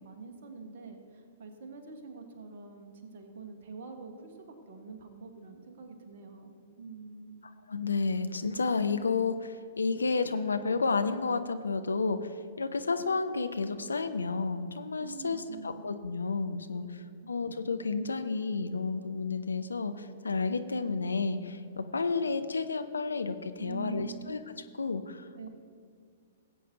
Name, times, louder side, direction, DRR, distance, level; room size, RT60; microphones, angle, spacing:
voice 1, 0.0-7.4 15.0-15.9 16.7-16.9 17.2-17.3 23.6-24.3 25.4-25.5, right 5 dB, 55° right, 5 dB, 1.4 m, -46 dB
voice 2, 7.4-16.8 17.3-24.4 24.8-25.5, left 4 dB, 75° left, 10 dB, 0.6 m, -31 dB
18.5 x 8.4 x 2.8 m, 2.2 s
figure-of-eight pair, 110°, 0 cm